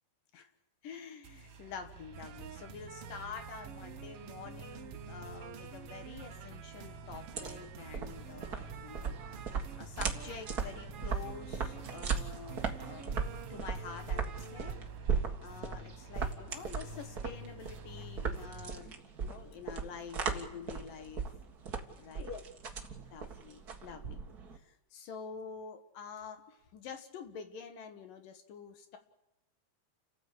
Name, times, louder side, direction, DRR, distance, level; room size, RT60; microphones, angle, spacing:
voice 1, 0.8-9.2 9.8-14.8 15.4-18.9 19.2-21.3 22.0-22.8 23.1-24.2 24.5-29.0, left 6 dB, 65° left, 7 dB, 3.1 m, -47 dB
sound 1, 1.2-18.7, right 2 dB, 65° right, 3.8 m, -50 dB
sound 2, 2.1-14.7, right 9 dB, 85° right, 1.3 m, -49 dB
sound 3, 7.1-24.6, right 6 dB, 40° right, 1.4 m, -37 dB
29.5 x 14.5 x 8.5 m, 0.85 s
omnidirectional pair, 4.4 m